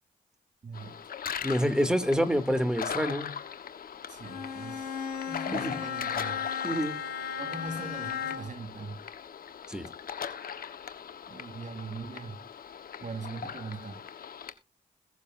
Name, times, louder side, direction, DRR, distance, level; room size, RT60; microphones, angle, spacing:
voice 1, 0.6-1.0 2.2-2.7 4.1-5.0 5.3-6.4 7.4-9.0 11.3-12.4 13.0-14.0, right 3 dB, 55° right, 3.0 m, -41 dB
sound 1, 0.7-14.5, left 7 dB, 70° left, 1.4 m, -40 dB
voice 2, 1.4-3.4 5.5-5.7 6.6-7.0 9.7-9.9, equal, 5° right, 2.8 m, -27 dB
Bowed string instrument, 4.2-8.7, left 7 dB, 90° left, 1.8 m, -35 dB
21.5 x 7.3 x 2.7 m
supercardioid pair, 45°, 15 cm